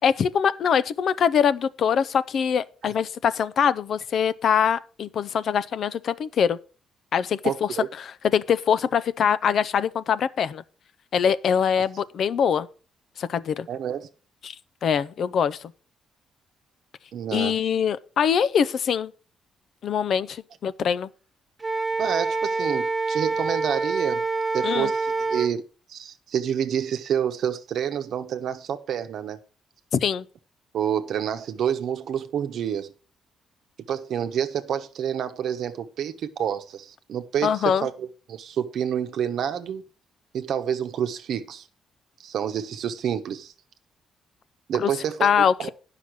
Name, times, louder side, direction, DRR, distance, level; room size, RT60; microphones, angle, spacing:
voice 1, 0.0-6.6 7.1-10.6 11.1-12.7 13.2-13.7 14.4-14.6 14.8-15.6 17.3-19.1 19.8-21.1 24.6-24.9 29.9-30.2 37.4-37.9 44.8-44.9 45.2-45.7, left 7 dB, 60° left, 0.6 m, -23 dB
voice 2, 7.4-7.9 13.7-14.1 17.1-17.5 22.0-24.3 24.5-25.6 25.9-29.4 30.7-32.9 33.9-39.8 40.3-41.7 42.2-43.5 44.7-45.7, right 9 dB, 70° right, 0.9 m, -28 dB
Wind instrument woodwind instrument, 21.6-25.5, right 3 dB, 20° right, 0.8 m, -26 dB
10.0 x 5.8 x 6.0 m
cardioid pair, 90°, 0 cm